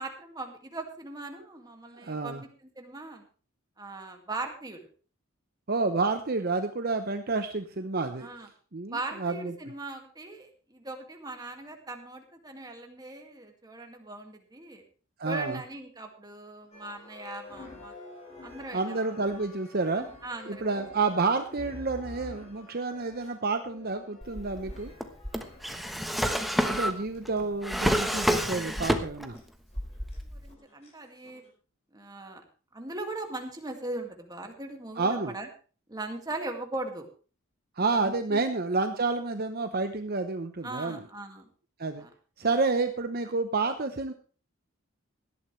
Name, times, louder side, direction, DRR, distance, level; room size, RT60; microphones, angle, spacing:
voice 1, 0.0-3.3 3.8-4.9 8.2-8.5 8.9-14.8 15.2-17.9 18.4-19.0 20.2-20.8 30.3-31.4 31.9-32.4 32.7-35.5 35.9-37.1 37.8-38.4 40.6-41.5 42.0-42.1 42.4-42.5, right 2 dB, 20° right, 3 dB, 2.2 m, -39 dB
voice 2, 1.9-2.4 5.7-8.3 8.7-9.5 15.2-15.6 18.7-20.1 20.5-24.9 26.6-29.4 35.0-35.4 37.8-41.0 41.8-42.1 42.4-44.1, right 3 dB, 45° right, 7 dB, 0.9 m, -29 dB
sound 1, 16.7-27.6 28.2-28.3 28.9-29.1 29.3-29.4 29.7-30.2 30.5-30.9 31.2-31.5, left 2 dB, 30° left, 6.3 m, -49 dB
Drawer open or close, 24.2-29.4 29.7-30.5, equal, ahead, 1.1 m, -29 dB
17.5 x 12.5 x 3.3 m, 0.38 s
head